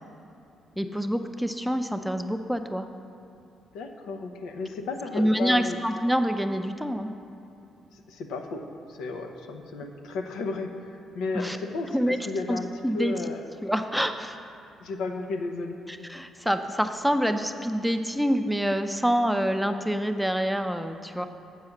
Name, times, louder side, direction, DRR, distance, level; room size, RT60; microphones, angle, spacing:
voice 1, 0.8-2.9 5.1-7.1 11.3-11.6 11.9-12.2 12.5-13.1 13.6-14.4 15.9-21.3, equal, ahead, 8 dB, 0.4 m, -26 dB
voice 2, 3.7-5.8 7.9-8.6 8.9-12.7 12.9-13.4 14.8-15.8, left 3 dB, 90° left, 5 dB, 0.7 m, -33 dB
8.2 x 4.8 x 6.5 m, 2.8 s
cardioid pair, 90°, 0 cm